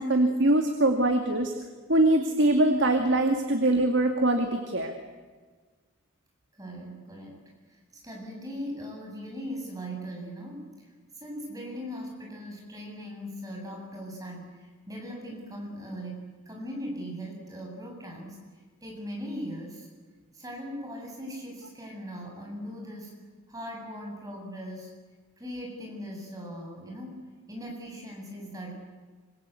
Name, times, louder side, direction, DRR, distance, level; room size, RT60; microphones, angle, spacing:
voice 1, 0.0-1.5 1.9-4.9, right 1 dB, 55° right, 5 dB, 2.4 m, -23 dB
voice 2, 6.5-10.9 11.2-19.9 20.3-23.2 23.5-24.9 25.4-27.2 27.5-28.9, equal, 15° right, 0 dB, 7.7 m, -39 dB
26.5 x 26.5 x 8.4 m, 1.5 s
head